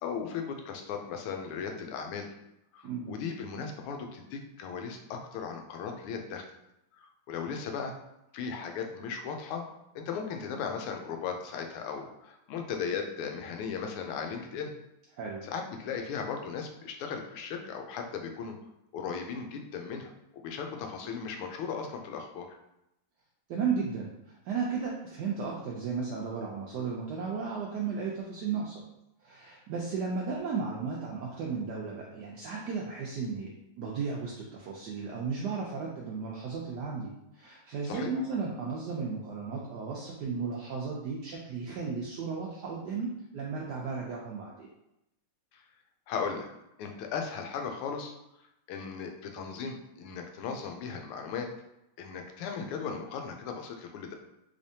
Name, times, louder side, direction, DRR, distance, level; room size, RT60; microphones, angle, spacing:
voice 1, 0.0-2.3 2.7-6.4 7.0-7.9 8.3-9.6 9.9-14.7 15.4-18.5 18.9-22.6 37.8-38.1 45.5-45.6 46.1-46.5 46.8-48.1 48.7-51.5 52.0-54.1, left 6 dB, 90° left, 4 dB, 1.5 m, -37 dB
voice 2, 23.5-28.8 29.2-33.5 33.8-44.7, right 5 dB, 80° right, -3 dB, 0.9 m, -34 dB
3.5 x 3.3 x 2.7 m, 0.85 s
omnidirectional pair, 2.3 m